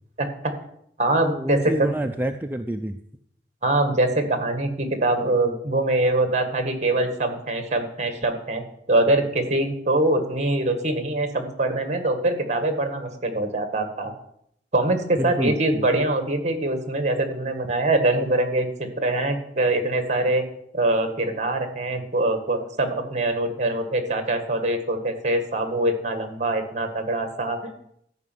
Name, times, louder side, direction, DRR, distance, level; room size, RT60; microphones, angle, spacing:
voice 1, 0.2-0.5 1.0-1.9 3.6-14.1 14.7-20.4 20.7-27.7, right 2 dB, 40° right, 8 dB, 1.8 m, -23 dB
voice 2, 1.2-3.0 15.2-15.9, right 1 dB, 10° right, 4 dB, 0.5 m, -28 dB
13.5 x 5.3 x 9.2 m, 0.72 s
head